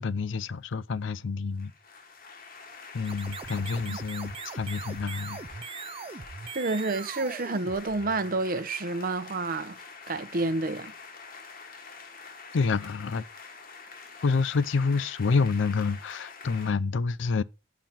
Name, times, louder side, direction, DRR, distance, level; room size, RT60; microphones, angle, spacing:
voice 1, 0.0-1.7 2.9-5.4 12.5-13.3 14.2-17.4, left 4 dB, 65° left, 0.5 m, -28 dB
sound 1, 1.5-16.7, left 5 dB, 50° left, 1.5 m, -46 dB
sound 2, 2.9-8.4, right 6 dB, 30° right, 0.4 m, -41 dB
voice 2, 6.5-10.9, right 3 dB, 45° right, 0.8 m, -29 dB
7.1 x 5.9 x 7.4 m
head